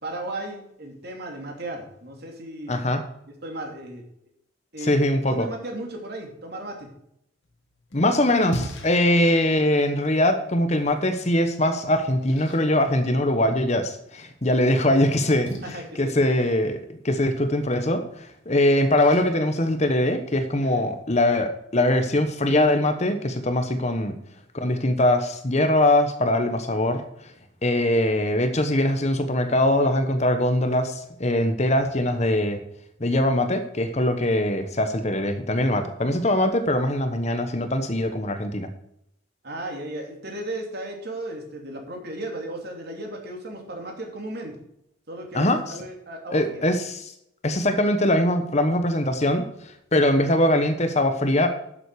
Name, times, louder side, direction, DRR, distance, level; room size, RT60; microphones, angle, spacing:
voice 1, 0.0-2.8 3.4-4.0 4.7-6.9 15.6-16.2 20.6-20.7 39.4-44.6 45.1-46.6, right 1 dB, 50° right, 1 dB, 2.9 m, -35 dB
voice 2, 2.7-3.0 4.8-5.5 7.9-15.5 16.0-24.2 24.5-27.3 27.6-32.6 33.0-38.7 45.3-45.7 46.3-47.1 47.4-51.5, left 1 dB, 35° left, 8 dB, 1.0 m, -22 dB
Splash splatter, 7.4-20.4, equal, 75° left, 2.5 m, -42 dB
11.5 x 7.6 x 4.8 m, 0.75 s
head